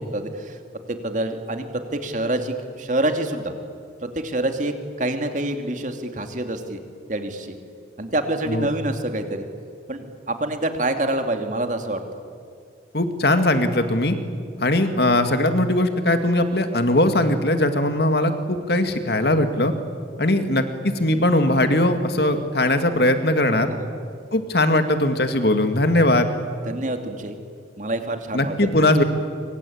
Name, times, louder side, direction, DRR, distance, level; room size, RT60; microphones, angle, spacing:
voice 1, 0.1-0.6 0.9-1.7 1.9-3.5 4.0-6.8 7.1-7.5 8.0-9.4 9.9-12.0 23.7-23.9 26.7-27.4 27.8-28.5, right 1 dB, 45° right, 6 dB, 2.6 m, -26 dB
voice 2, 12.9-14.2 14.6-19.7 20.2-23.7 24.3-26.3 28.3-29.0, left 1 dB, 60° left, 8 dB, 2.3 m, -20 dB
27.0 x 25.0 x 8.7 m, 2.3 s
head